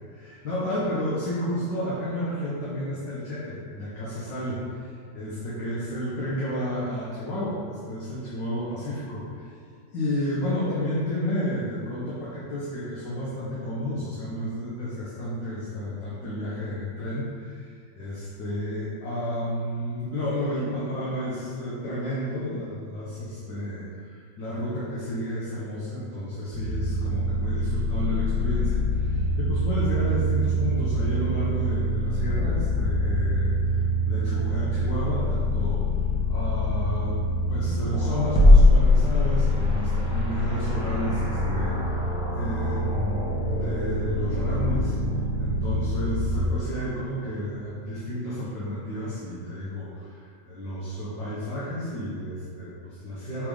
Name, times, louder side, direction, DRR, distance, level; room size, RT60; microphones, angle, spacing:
voice 1, 0.1-9.5 9.9-35.9 36.3-44.9 45.4-53.5, left 1 dB, 70° left, -8 dB, 1.8 m, -31 dB
sound 1, 26.5-46.5, left 1 dB, 5° right, 0.7 m, -24 dB
6.2 x 4.4 x 5.0 m, 2.2 s
omnidirectional pair, 2.0 m